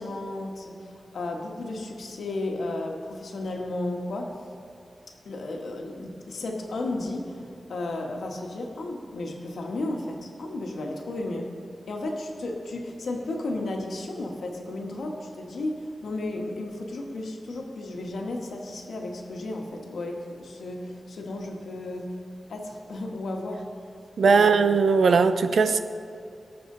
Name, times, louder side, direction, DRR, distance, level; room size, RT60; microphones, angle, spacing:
voice 1, 0.0-4.3 5.2-11.5 11.9-22.2 22.5-23.6 24.3-24.8, left 2 dB, 90° left, 1 dB, 1.5 m, -33 dB
voice 2, 24.2-25.8, right 5 dB, 80° right, 10 dB, 0.5 m, -19 dB
18.5 x 6.8 x 3.9 m, 2.5 s
wide cardioid pair, 110°, 0 cm